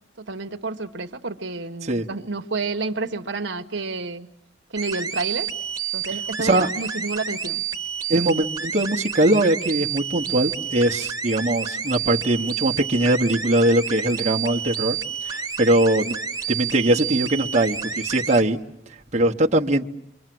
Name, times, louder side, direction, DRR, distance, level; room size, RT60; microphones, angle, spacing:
voice 1, 0.2-4.3 4.7-5.5 5.9-7.6, right 3 dB, 70° right, 6 dB, 1.1 m, -30 dB
sound 1, 4.8-18.4, right 7 dB, 20° right, 1.4 m, -30 dB
voice 2, 6.4-6.7 8.1-15.0 15.2-16.1 16.5-18.6 19.1-19.8, right 1 dB, 35° right, 1 dB, 1.1 m, -21 dB
29.0 x 24.0 x 7.7 m, 0.76 s
head